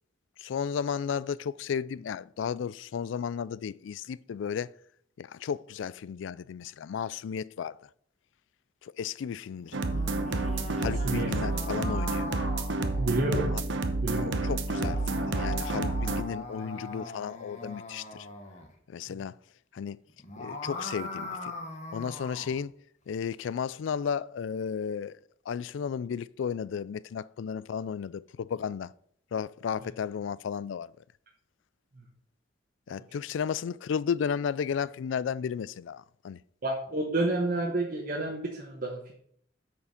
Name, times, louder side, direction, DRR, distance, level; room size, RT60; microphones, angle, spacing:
voice 1, 0.4-4.7 5.2-7.8 8.8-9.8 10.8-12.3 13.5-13.6 14.1-18.3 18.9-19.4 19.7-20.0 20.4-21.5 21.9-22.7 23.1-25.2 25.5-28.9 29.3-30.9 32.9-36.4, left 7 dB, 75° left, 0.3 m, -34 dB
sound 1, 9.6-13.5 14.5-18.7 20.1-22.6, left 2 dB, 35° left, 1.3 m, -40 dB
sound 2, 9.7-16.2, right 2 dB, 75° right, 0.9 m, -29 dB
voice 2, 10.7-11.3 13.0-13.5 14.0-14.4 36.6-39.1, right 2 dB, 45° right, 1.1 m, -30 dB
8.4 x 4.8 x 5.8 m
head